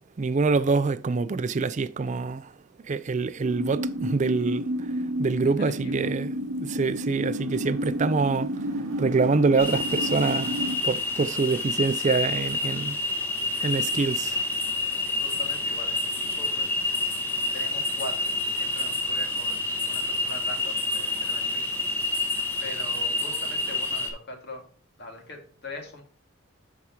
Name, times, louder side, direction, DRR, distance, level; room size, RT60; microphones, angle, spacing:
voice 1, 0.2-2.5 2.9-4.7 5.2-6.3 6.6-8.5 9.0-10.6 10.8-13.0 13.6-14.4, right 4 dB, 35° right, 0.4 m, -25 dB
sound 1, 3.4-10.8, equal, 65° right, 0.9 m, -30 dB
voice 2, 5.4-6.1 14.9-16.7 17.5-18.3 18.6-21.9 22.6-24.6 25.0-26.0, left 2 dB, 50° left, 2.1 m, -42 dB
sound 2, 9.6-24.1, left 2 dB, 10° left, 1.4 m, -28 dB
12.0 x 4.8 x 2.9 m
head